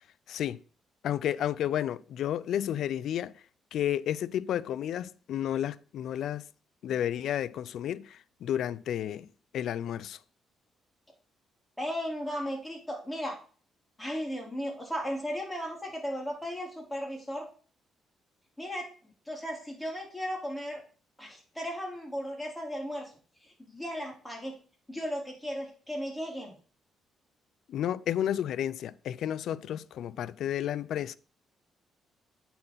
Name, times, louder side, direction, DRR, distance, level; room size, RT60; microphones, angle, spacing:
voice 1, 0.3-0.6 1.0-3.3 3.7-6.5 6.8-9.3 9.5-10.2 27.7-31.2, left 10 dB, 75° left, 0.4 m, -31 dB
voice 2, 11.8-13.4 14.0-17.5 18.6-18.9 19.3-20.8 21.2-23.1 23.4-24.6 24.9-26.5, equal, 10° left, 4.0 m, -36 dB
8.8 x 4.3 x 5.6 m
cardioid pair, 90°, 0 cm